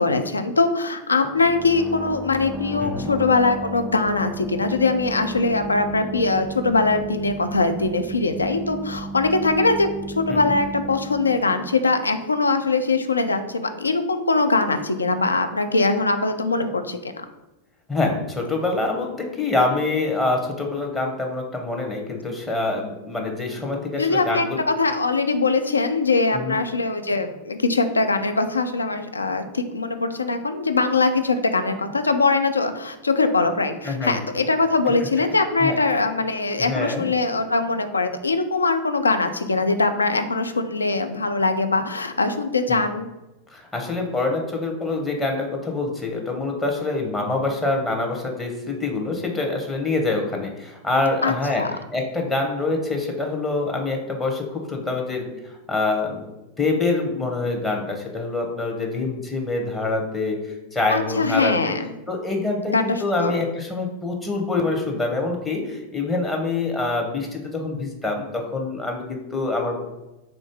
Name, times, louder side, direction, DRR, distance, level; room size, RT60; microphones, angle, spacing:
voice 1, 0.0-17.3 24.0-43.1 51.2-51.8 60.9-61.9 62.7-63.4, left 3 dB, 80° left, 8 dB, 0.3 m, -22 dB
sound 1, 1.2-12.7, right 2 dB, 5° right, 0.3 m, -34 dB
voice 2, 2.8-3.1 10.3-10.5 17.9-24.6 26.3-26.6 33.8-34.2 35.6-35.8 36.6-37.1 42.7-42.8 43.5-51.6 51.9-55.3 55.7-56.2 56.6-61.5 62.1-69.8, left 3 dB, 10° left, 0 dB, 0.7 m, -25 dB
3.7 x 2.6 x 3.5 m, 1.0 s
figure-of-eight pair, 90°, 0 cm